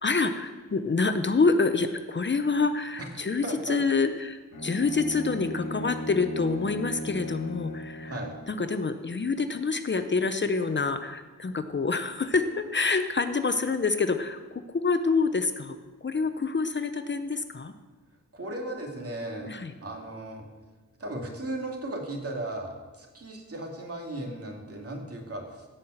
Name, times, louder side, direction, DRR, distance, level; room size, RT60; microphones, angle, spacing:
voice 1, 0.0-8.2 8.5-17.7 19.4-19.7, left 4 dB, 40° left, 9 dB, 0.7 m, -27 dB
voice 2, 3.4-3.8 8.1-8.3 18.3-19.5 19.8-20.4 21.0-25.7, right 1 dB, 50° right, 1 dB, 2.6 m, -36 dB
Bowed string instrument, 4.5-8.6, left 1 dB, 85° left, 2.4 m, -36 dB
16.5 x 5.7 x 7.8 m, 1.3 s
wide cardioid pair, 115°, 30 cm